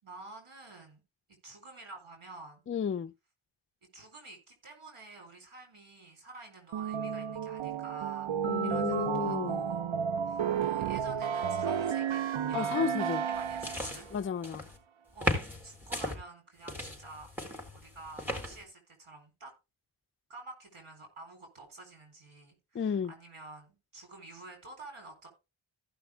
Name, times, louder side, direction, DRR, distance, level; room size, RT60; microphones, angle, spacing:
voice 1, 0.0-1.0 1.4-2.6 3.9-8.4 8.6-9.9 10.2-12.9 13.3-14.1 15.1-17.3 17.7-19.5 20.3-25.3, right 3 dB, 85° right, 4.2 m, -49 dB
voice 2, 2.7-3.1 8.5-9.6 12.5-13.2 14.1-14.7 22.7-23.1, left 7 dB, 30° left, 0.4 m, -32 dB
sound 1, 6.7-14.0, right 8 dB, 70° right, 0.7 m, -32 dB
sound 2, 13.3-14.8 15.2-16.2 16.7-18.6, left 1 dB, 5° right, 4.1 m, -36 dB
15.0 x 5.9 x 3.5 m
cardioid pair, 45°, 49 cm